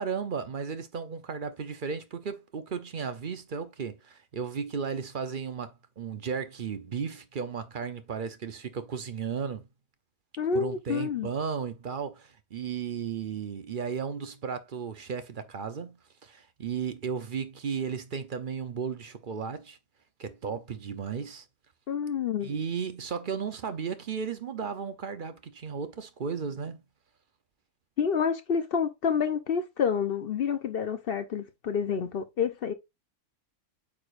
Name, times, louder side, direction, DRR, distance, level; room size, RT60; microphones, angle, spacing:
voice 1, 0.0-9.6 10.5-19.8 20.2-21.5 22.4-26.8, right 6 dB, 50° right, 0.7 m, -34 dB
voice 2, 10.4-11.3 21.9-22.5 28.0-32.7, left 6 dB, 55° left, 0.7 m, -28 dB
8.7 x 4.8 x 2.4 m
omnidirectional pair, 1.5 m